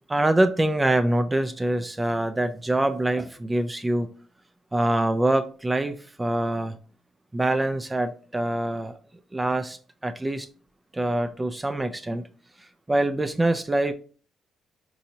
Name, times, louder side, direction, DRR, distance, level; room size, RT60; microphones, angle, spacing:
voice 1, 0.1-4.1 4.7-6.8 7.3-8.9 9.3-9.8 10.0-10.5 10.9-12.3 12.9-13.9, right 1 dB, 15° right, 0.3 m, -24 dB
4.2 x 2.7 x 2.7 m
cardioid pair, 90°, 0 cm